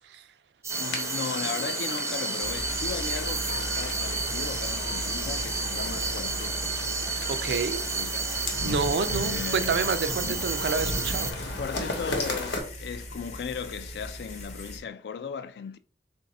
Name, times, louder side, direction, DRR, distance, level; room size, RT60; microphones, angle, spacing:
sound 1, 0.6-11.3, right 4 dB, 15° right, 0.4 m, -31 dB
sound 2, 0.7-12.6, left 2 dB, 85° left, 1.0 m, -35 dB
voice 1, 0.8-6.7 7.9-8.4 9.1-9.8 10.2-10.7 11.2-15.8, left 6 dB, 65° left, 0.3 m, -37 dB
sound 3, 2.4-14.8, equal, 40° left, 0.7 m, -39 dB
voice 2, 7.3-7.8 8.6-11.3, right 4 dB, 75° right, 0.4 m, -28 dB
3.4 x 2.5 x 4.1 m
head